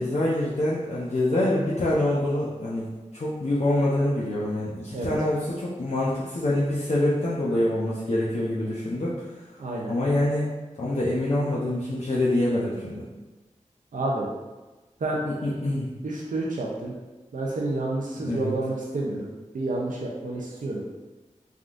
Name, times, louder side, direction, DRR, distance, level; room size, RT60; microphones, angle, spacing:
voice 1, 0.0-9.1 9.9-10.5 10.8-13.0 15.2-15.9 18.2-18.5, left 1 dB, 60° left, -8 dB, 0.6 m, -25 dB
voice 2, 9.6-9.9 13.9-14.3 15.0-15.2 16.0-16.9 17.3-19.3 19.5-20.8, right 2 dB, 90° right, -3 dB, 0.5 m, -29 dB
3.6 x 2.4 x 2.4 m, 1.2 s
wide cardioid pair, 50°, 13 cm